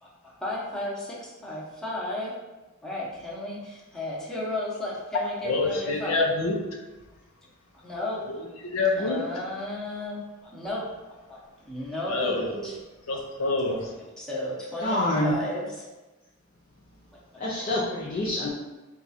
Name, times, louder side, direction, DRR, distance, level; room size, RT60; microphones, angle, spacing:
voice 1, 0.0-2.3 2.8-6.2 7.8-8.4 9.0-11.4 11.6-12.8 14.2-15.9 17.3-17.7, left 1 dB, 5° left, -6 dB, 0.9 m, -34 dB
voice 2, 5.4-6.6 8.3-9.2 12.1-12.7 13.1-13.9, left 3 dB, 75° left, 1 dB, 0.7 m, -27 dB
voice 3, 14.8-15.4 17.4-18.5, left 1 dB, 40° left, -6 dB, 0.6 m, -26 dB
4.6 x 2.4 x 4.1 m, 1.1 s
head